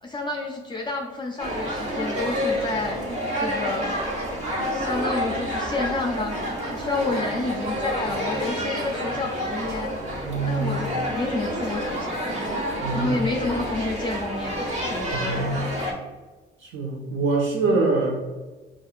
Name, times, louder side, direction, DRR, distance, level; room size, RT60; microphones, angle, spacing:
voice 1, 0.0-3.0 3.3-4.1 4.6-9.9 10.5-12.3 12.9-15.5, left 3 dB, 25° left, 1 dB, 0.4 m, -30 dB
sound 1, 1.4-15.9, equal, 35° right, 1.3 m, -29 dB
voice 2, 10.2-10.8 12.8-13.1 15.1-15.7 16.6-18.2, right 3 dB, 75° right, 0 dB, 1.1 m, -24 dB
5.3 x 2.6 x 2.4 m, 1.2 s
cardioid pair, 90°, 20 cm